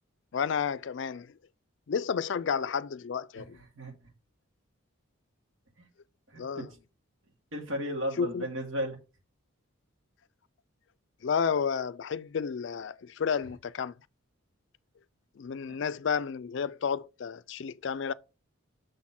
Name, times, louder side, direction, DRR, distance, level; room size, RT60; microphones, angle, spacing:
voice 1, 0.3-1.4 1.9-3.6 6.4-6.7 8.2-8.5 11.2-14.0 15.4-18.1, left 6 dB, 60° left, 0.4 m, -31 dB
voice 2, 6.3-6.7 7.5-9.0 15.7-15.8, equal, 75° right, 2.3 m, -34 dB
6.5 x 4.2 x 5.7 m
head